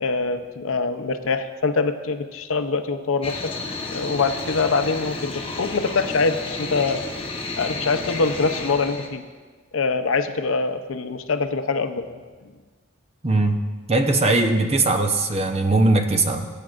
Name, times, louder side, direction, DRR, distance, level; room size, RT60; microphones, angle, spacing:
voice 1, 0.0-3.5 3.9-7.0 7.6-9.2 9.7-12.2, left 4 dB, 85° left, 9 dB, 0.6 m, -24 dB
sound 1, 3.2-9.1, left 3 dB, 30° left, 1.1 m, -32 dB
voice 2, 13.2-13.6 13.9-16.5, right 2 dB, 30° right, 5 dB, 0.8 m, -20 dB
20.5 x 8.6 x 2.5 m, 1.5 s
head